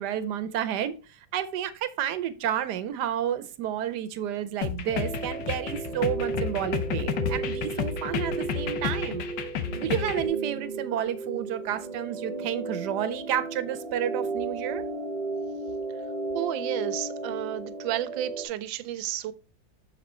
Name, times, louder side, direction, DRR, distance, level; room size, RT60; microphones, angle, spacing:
voice 1, 0.0-9.2 9.7-14.8, right 10 dB, 70° right, 1.1 m, -31 dB
sound 1, 4.6-10.3, left 7 dB, 75° left, 1.4 m, -31 dB
sound 2, 4.9-18.5, right 3 dB, 25° right, 0.8 m, -34 dB
voice 2, 16.3-19.3, right 13 dB, 85° right, 1.3 m, -32 dB
6.6 x 4.3 x 4.1 m
omnidirectional pair, 2.0 m